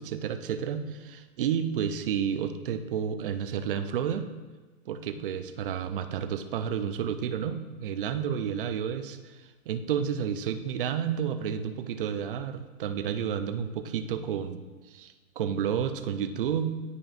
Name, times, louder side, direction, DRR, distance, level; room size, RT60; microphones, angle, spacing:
voice 1, 0.0-4.3 4.9-16.7, right 8 dB, 40° right, 9 dB, 0.4 m, -31 dB
11.0 x 4.9 x 2.5 m, 1.3 s
hypercardioid pair, 155°, 43 cm